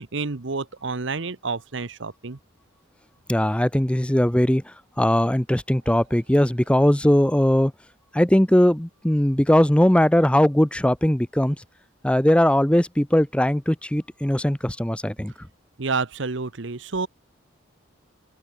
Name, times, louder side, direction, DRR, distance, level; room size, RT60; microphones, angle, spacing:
voice 1, 0.0-2.4 15.8-17.1, right 4 dB, 65° right, 1.0 m, -29 dB
voice 2, 3.3-4.6 5.0-7.7 8.1-11.6 12.0-15.3, left 1 dB, 5° left, 0.6 m, -19 dB
head